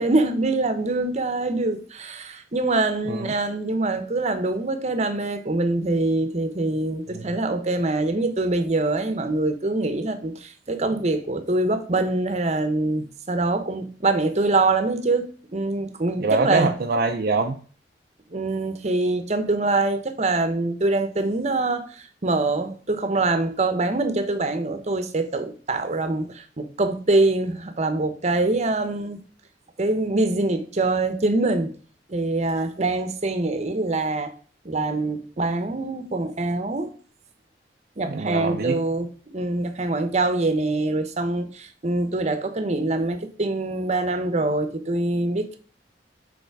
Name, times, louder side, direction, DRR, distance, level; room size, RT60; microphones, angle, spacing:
voice 1, 0.0-16.7 18.3-29.2 29.8-31.7 32.1-34.3 34.6-36.9 38.0-39.1 39.3-45.6, right 2 dB, 40° right, 0.9 m, -24 dB
voice 2, 16.2-17.6 38.1-38.8, right 3 dB, 55° right, 0.5 m, -24 dB
6.8 x 4.2 x 4.7 m
head